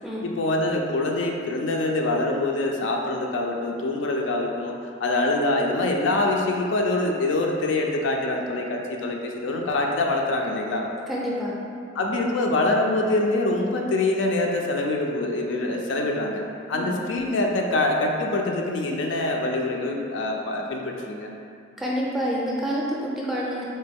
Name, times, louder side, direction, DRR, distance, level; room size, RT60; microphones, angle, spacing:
voice 1, 0.2-4.7 5.0-10.9 12.0-16.4 16.7-21.3, left 2 dB, 70° left, 1 dB, 0.4 m, -25 dB
voice 2, 11.1-11.5 16.7-17.0 21.8-23.6, equal, ahead, -5 dB, 0.4 m, -27 dB
4.0 x 2.2 x 3.4 m, 2.4 s
head